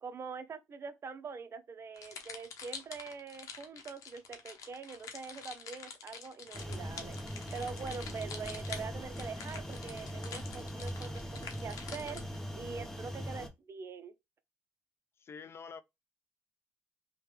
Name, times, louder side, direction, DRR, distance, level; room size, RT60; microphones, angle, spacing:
voice 1, 0.0-14.1, right 5 dB, 45° right, 0.5 m, -44 dB
sound 1, 2.0-12.4, left 6 dB, 70° left, 0.8 m, -47 dB
sound 2, 6.5-13.5, equal, 10° left, 0.8 m, -41 dB
voice 2, 15.2-15.8, left 5 dB, 45° left, 0.5 m, -46 dB
3.2 x 2.2 x 3.3 m
supercardioid pair, 75°, 6 cm